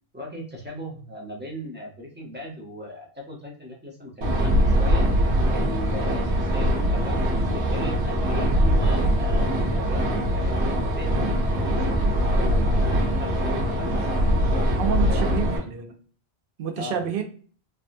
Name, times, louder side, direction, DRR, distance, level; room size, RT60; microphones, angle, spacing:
voice 1, 0.1-5.1 5.5-7.2 7.5-15.6 16.7-17.0, left 1 dB, 10° right, -2 dB, 0.7 m, -38 dB
sound 1, 4.2-15.6, equal, 90° right, 1.0 m, -22 dB
voice 2, 14.8-16.0 16.6-17.2, right 8 dB, 60° right, 5 dB, 0.7 m, -28 dB
3.3 x 2.1 x 2.6 m, 0.43 s
omnidirectional pair, 1.1 m